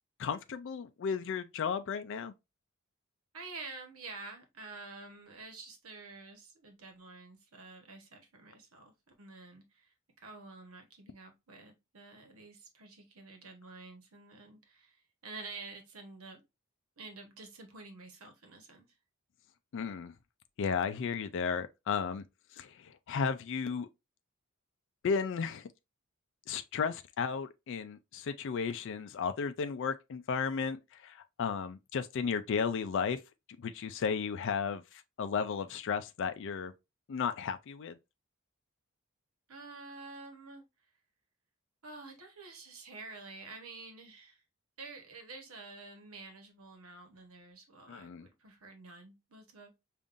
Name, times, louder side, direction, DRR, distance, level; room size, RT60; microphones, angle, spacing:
voice 1, 0.2-2.3 19.7-20.1 20.6-22.2 22.6-23.9 25.0-25.7 26.5-33.2 33.6-36.7 37.1-38.0 47.9-48.3, left 6 dB, 60° left, 0.4 m, -34 dB
voice 2, 3.3-16.4 17.0-18.9 39.5-40.6 41.8-44.4 44.8-49.7, right 3 dB, 85° right, 1.1 m, -49 dB
5.3 x 2.5 x 2.5 m
head